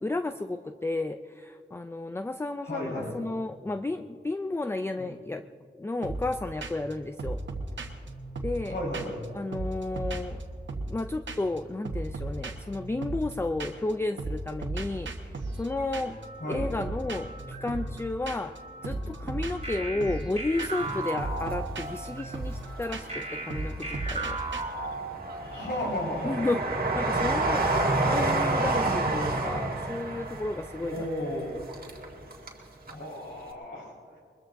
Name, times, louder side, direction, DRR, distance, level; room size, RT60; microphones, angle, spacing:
voice 1, 0.0-5.4 5.7-7.4 8.4-8.8 9.3-10.4 10.9-16.2 16.5-18.5 18.8-24.4 26.2-26.6 26.9-31.1, left 2 dB, 15° left, 8 dB, 0.4 m, -32 dB
voice 2, 2.6-3.1 5.0-5.1 8.6-9.2 16.4-16.7 18.8-19.0 19.9-20.1 25.4-26.5 30.8-31.5 32.9-34.2, left 1 dB, 70° left, -4 dB, 4.6 m, -34 dB
sound 1, 6.0-6.3 6.6-6.9 7.2-9.3 9.5-11.0 11.3-11.6 11.8-13.9 14.2-24.6, right 2 dB, 75° right, 1.4 m, -36 dB
sound 2, 19.6-22.1 23.1-25.6, right 2 dB, 30° right, 4.0 m, -36 dB
Train, 20.7-21.9 22.4-23.3 23.9-32.6 32.9-33.0, right 2 dB, 50° right, 1.9 m, -29 dB
22.5 x 21.5 x 2.6 m, 2.5 s
wide cardioid pair, 80°, 19 cm